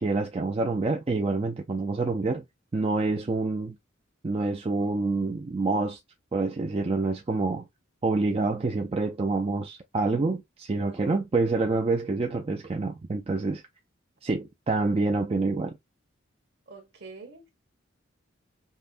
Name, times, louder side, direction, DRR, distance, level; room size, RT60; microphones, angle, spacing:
voice 1, 0.0-2.4 2.7-3.8 4.2-6.0 6.3-7.6 8.0-13.6 14.2-15.8, right 3 dB, 30° right, 0.4 m, -27 dB
voice 2, 10.8-11.1 16.7-17.5, right 4 dB, 55° right, 1.3 m, -46 dB
5.5 x 2.1 x 2.5 m
head